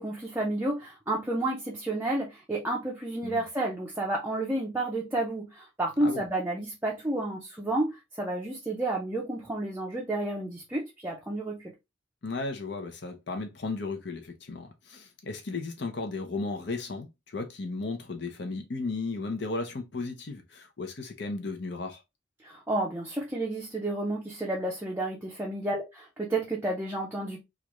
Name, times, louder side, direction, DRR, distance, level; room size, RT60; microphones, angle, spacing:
voice 1, 0.0-11.7 22.4-27.4, right 2 dB, 10° right, 0.5 m, -31 dB
voice 2, 12.2-22.0, left 3 dB, 60° left, 0.7 m, -35 dB
3.2 x 2.5 x 3.0 m
head